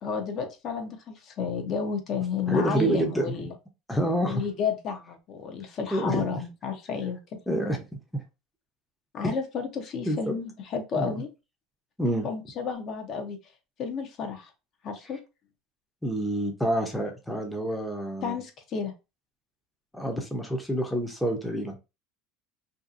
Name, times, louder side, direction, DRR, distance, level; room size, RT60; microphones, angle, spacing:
voice 1, 0.0-3.5 4.2-7.4 9.1-11.3 12.2-13.4 13.8-14.5 14.8-15.2 18.2-18.9, left 6 dB, 45° left, 5 dB, 0.6 m, -31 dB
voice 2, 2.5-3.2 3.9-4.4 5.9-6.4 7.5-7.8 8.1-8.2 9.2-9.3 10.1-10.2 11.0-11.1 12.0-12.3 16.0-18.4 19.9-21.8, equal, 5° left, 2 dB, 0.6 m, -27 dB
2.6 x 2.3 x 2.4 m, 0.27 s
supercardioid pair, 120°, 0 cm